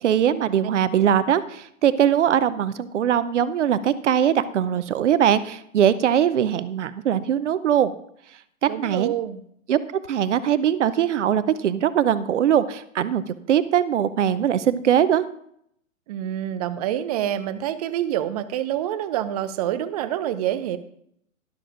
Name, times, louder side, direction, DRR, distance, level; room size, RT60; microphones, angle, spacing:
voice 1, 0.0-7.9 8.6-9.1 9.7-9.8 10.1-15.2, right 9 dB, 60° right, 15 dB, 0.8 m, -21 dB
voice 2, 8.7-9.4 16.1-20.8, right 11 dB, 30° right, 13 dB, 0.6 m, -27 dB
12.5 x 12.0 x 2.5 m, 0.70 s
figure-of-eight pair, 115°, 41 cm